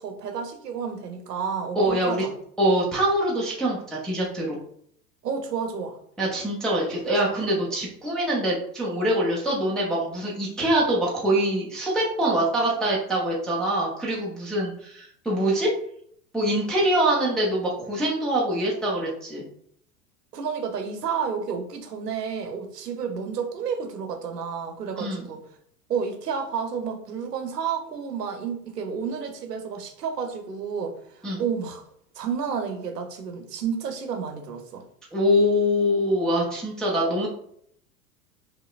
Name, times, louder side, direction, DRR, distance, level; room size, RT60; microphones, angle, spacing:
voice 1, 0.0-2.3 5.2-6.0 20.3-25.4 25.9-31.8 32.1-34.8, right 6 dB, 80° right, 5 dB, 0.8 m, -31 dB
voice 2, 1.8-2.2 2.6-4.6 6.2-15.7 16.3-19.4 25.0-25.3 31.2-31.4 35.1-37.3, equal, ahead, -5 dB, 0.4 m, -24 dB
5.2 x 2.1 x 2.3 m, 0.67 s
figure-of-eight pair, 90°, 47 cm